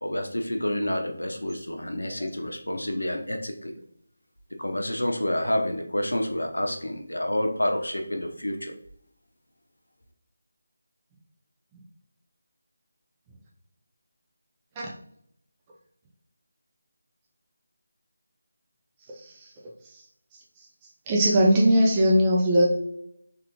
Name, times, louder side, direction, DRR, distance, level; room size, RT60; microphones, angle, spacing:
voice 1, 0.0-3.7 4.5-8.7, left 1 dB, 80° left, 4 dB, 0.7 m, -28 dB
voice 2, 21.1-22.6, equal, 15° right, -3 dB, 0.6 m, -19 dB
3.7 x 3.4 x 2.9 m, 0.71 s
figure-of-eight pair, 160°, 0 cm